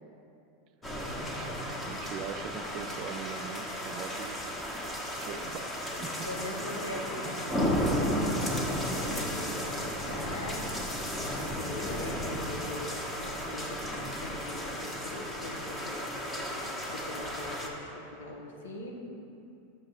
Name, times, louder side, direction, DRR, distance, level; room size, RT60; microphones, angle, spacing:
sound 1, 0.8-17.7, equal, 15° left, 1.0 m, -34 dB
voice 1, 1.2-4.4 5.2-5.7 6.0-6.2, right 7 dB, 45° right, 10 dB, 0.4 m, -42 dB
sound 2, 4.6-4.9 5.3-6.2 6.5-6.8 7.0-7.9 8.2-9.6 9.9-10.2 10.4-11.8 12.0-13.4, left 1 dB, 65° left, 1.2 m, -49 dB
voice 2, 6.3-10.6 11.3-13.8 14.2-16.6 16.9-19.0, left 1 dB, 85° left, 0 dB, 1.0 m, -42 dB
6.6 x 5.9 x 3.9 m, 2.6 s
hypercardioid pair, 95°, 0 cm